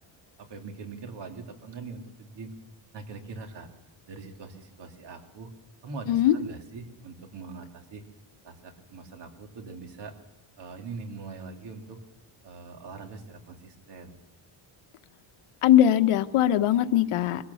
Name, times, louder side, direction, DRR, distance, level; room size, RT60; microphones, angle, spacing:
voice 1, 0.4-2.5 2.9-3.7 4.1-5.5 5.8-8.0 8.4-10.1 10.6-12.0 12.4-14.2, right 4 dB, 55° right, 3 dB, 3.2 m, -42 dB
voice 2, 15.6-17.5, left 11 dB, 85° left, 9 dB, 1.4 m, -21 dB
23.0 x 16.0 x 7.2 m, 1.0 s
cardioid pair, 155°, 50 cm